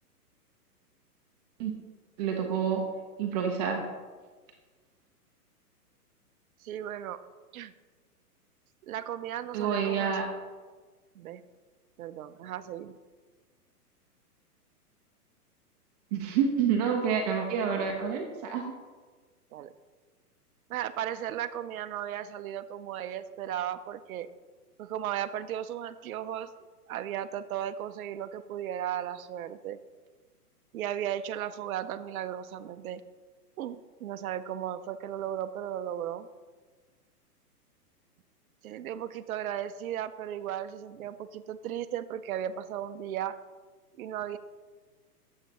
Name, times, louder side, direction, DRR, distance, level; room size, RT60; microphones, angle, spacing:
voice 1, 2.2-2.8 3.2-3.8 9.5-10.3 16.1-18.6, right 7 dB, 25° right, 2 dB, 0.7 m, -28 dB
voice 2, 6.6-7.2 7.5-7.7 8.8-10.2 11.2-11.4 12.0-13.0 19.5-19.7 20.7-24.3 24.8-26.5 26.9-29.8 30.7-33.0 33.6-36.3 38.6-43.4 43.9-44.4, right 10 dB, 65° right, 11 dB, 0.6 m, -35 dB
9.4 x 7.4 x 3.0 m, 1.4 s
hypercardioid pair, 135°, 47 cm